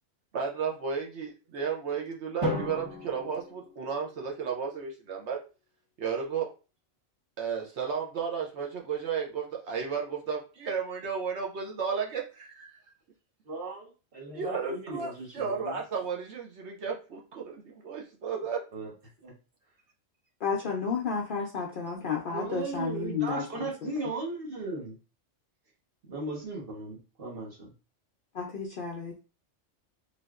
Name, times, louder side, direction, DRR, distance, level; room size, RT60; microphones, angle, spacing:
voice 1, 0.3-5.4 6.0-6.5 7.4-12.8 14.3-18.6, right 6 dB, 65° right, 0 dB, 0.9 m, -33 dB
Drum, 2.4-4.5, left 1 dB, 25° right, 1.1 m, -35 dB
voice 2, 13.4-15.8 18.7-18.9 19.2-19.3 22.3-25.0 26.1-27.7, right 3 dB, 50° right, -2 dB, 1.2 m, -37 dB
voice 3, 20.4-23.7 28.3-29.2, left 5 dB, 60° left, -1 dB, 0.5 m, -32 dB
3.3 x 2.6 x 2.3 m, 0.33 s
omnidirectional pair, 1.3 m